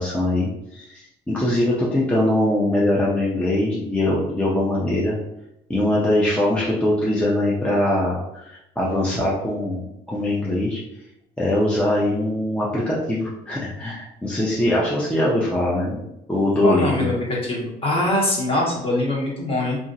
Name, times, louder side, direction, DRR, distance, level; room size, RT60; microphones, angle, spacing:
voice 1, 0.0-5.2 5.7-8.5 8.8-9.8 10.1-10.8 11.4-16.0 16.3-17.1, left 1 dB, 5° left, -6 dB, 0.5 m, -22 dB
voice 2, 16.6-19.8, left 1 dB, 35° left, -3 dB, 1.0 m, -23 dB
2.7 x 2.4 x 2.6 m, 0.85 s
cardioid pair, 110°, 17 cm